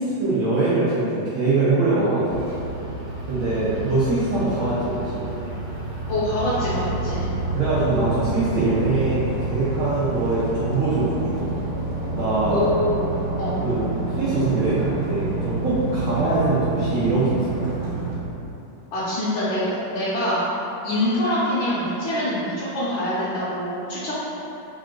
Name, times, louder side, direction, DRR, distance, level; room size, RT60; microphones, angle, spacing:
voice 1, 0.0-2.4 3.3-5.3 7.5-11.5 12.1-12.6 13.6-13.8 14.1-17.7, right 2 dB, 80° right, -11 dB, 0.7 m, -23 dB
sound 1, 2.3-18.2, right 2 dB, 60° right, 1.2 m, -29 dB
voice 2, 6.1-7.3 12.5-13.6 18.9-20.4 20.8-24.1, left 1 dB, 70° left, -11 dB, 1.4 m, -25 dB
3.7 x 2.4 x 3.6 m, 2.9 s
omnidirectional pair, 2.3 m